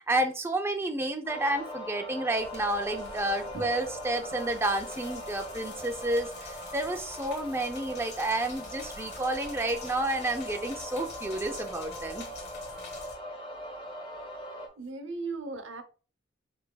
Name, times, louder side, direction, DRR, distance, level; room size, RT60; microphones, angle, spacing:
voice 1, 0.0-12.3, right 1 dB, 15° right, 4 dB, 0.4 m, -30 dB
sound 1, 1.2-14.7, left 1 dB, 25° left, 0.9 m, -41 dB
sound 2, 2.3-13.1, left 3 dB, 60° left, 1.5 m, -47 dB
voice 2, 14.8-15.8, right 3 dB, 75° right, 8 dB, 0.7 m, -36 dB
5.9 x 3.4 x 2.2 m, 0.38 s
head